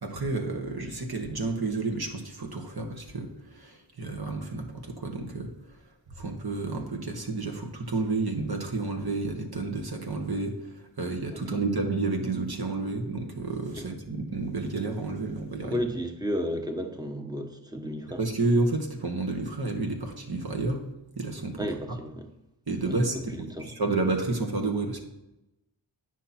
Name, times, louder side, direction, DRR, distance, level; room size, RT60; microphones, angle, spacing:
voice 1, 0.0-5.5 6.2-10.5 11.0-15.8 18.2-20.8 21.2-21.6 22.7-25.0, right 3 dB, 50° right, 3 dB, 1.4 m, -30 dB
voice 2, 11.3-11.6 13.7-13.9 15.6-18.2 21.6-22.3 22.9-23.7, equal, 10° right, 4 dB, 1.2 m, -33 dB
9.3 x 5.8 x 4.3 m, 0.92 s
wide cardioid pair, 55°, 48 cm